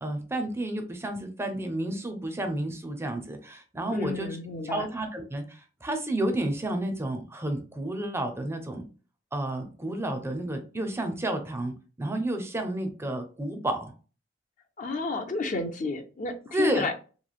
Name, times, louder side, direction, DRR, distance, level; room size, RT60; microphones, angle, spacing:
voice 1, 0.0-4.3 4.6-8.9 9.3-13.9 16.5-16.9, right 1 dB, 15° right, 6 dB, 0.4 m, -31 dB
voice 2, 3.9-4.9 14.8-16.9, left 3 dB, 45° left, 6 dB, 0.4 m, -31 dB
3.0 x 2.7 x 2.3 m, 0.36 s
head